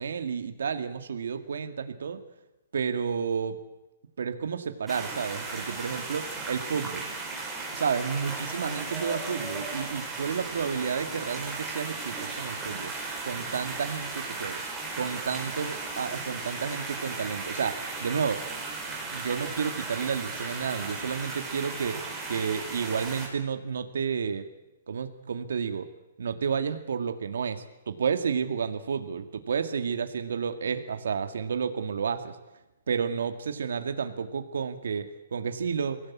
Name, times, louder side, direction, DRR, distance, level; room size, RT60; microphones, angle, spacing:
voice 1, 0.0-2.2 2.7-3.6 4.2-7.0 7.7-12.9 13.2-14.6 15.0-18.4 19.1-22.0 22.3-24.5 24.9-25.9 26.2-32.4 32.9-36.0, right 6 dB, 75° right, 8 dB, 2.0 m, -31 dB
sound 1, 4.9-23.3, right 3 dB, 5° right, 4.1 m, -36 dB
24.0 x 17.0 x 8.5 m, 1.0 s
hypercardioid pair, 165°, 0 cm